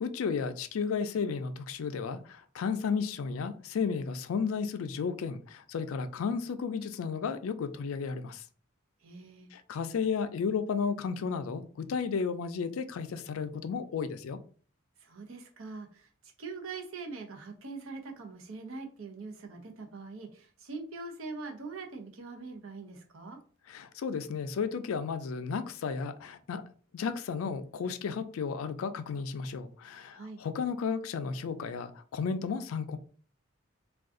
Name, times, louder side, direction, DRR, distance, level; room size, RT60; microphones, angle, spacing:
voice 1, 0.0-8.4 9.5-14.4 23.7-26.6 26.9-33.0, left 5 dB, 85° left, 0.4 m, -33 dB
voice 2, 9.0-9.5 15.0-16.1 16.4-23.4 30.1-30.4, right 3 dB, 80° right, 0.7 m, -43 dB
2.5 x 2.3 x 3.6 m
head